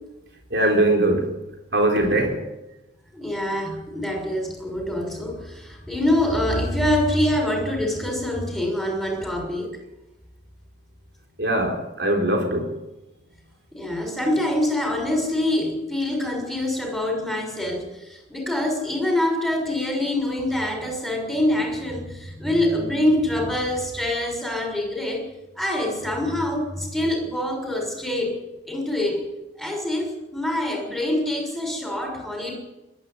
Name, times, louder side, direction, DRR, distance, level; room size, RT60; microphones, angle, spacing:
voice 1, 0.5-1.4 1.7-2.4 11.4-12.8, right 1 dB, 60° right, 1 dB, 4.0 m, -21 dB
voice 2, 3.1-9.7 13.7-25.2 25.6-28.4 28.7-29.2 29.6-32.6, left 1 dB, ahead, 0 dB, 5.9 m, -25 dB
22.0 x 12.5 x 9.9 m, 0.97 s
head